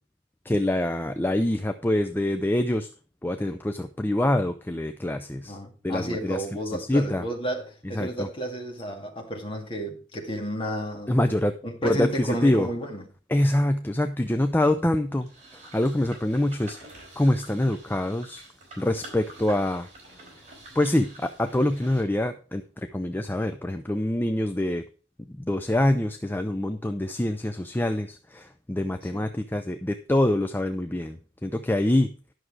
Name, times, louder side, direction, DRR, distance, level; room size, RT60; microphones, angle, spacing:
voice 1, 0.5-2.9 3.2-5.6 5.8-6.4 6.8-7.2 7.9-8.3 11.1-11.5 11.8-12.7 13.3-16.8 17.2-18.4 18.8-19.9 20.8-22.6 22.9-24.8 25.3-32.1, left 1 dB, 10° left, 0.5 m, -25 dB
voice 2, 5.4-11.2 11.6-13.0 29.1-29.2, right 1 dB, 30° left, 2.0 m, -32 dB
sound 1, 15.2-22.0, right 2 dB, 40° right, 4.7 m, -47 dB
11.0 x 6.4 x 4.7 m
head